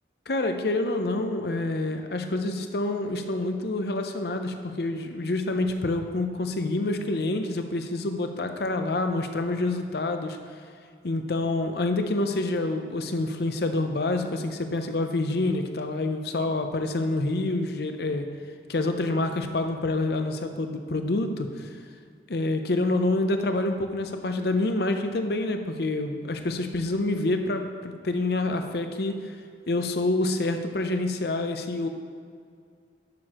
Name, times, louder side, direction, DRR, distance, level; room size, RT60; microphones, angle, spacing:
voice 1, 0.3-10.4 11.0-18.3 18.7-21.7 22.3-29.3 29.7-31.9, left 2 dB, 55° left, 6 dB, 0.6 m, -27 dB
11.5 x 6.7 x 3.0 m, 2.2 s
head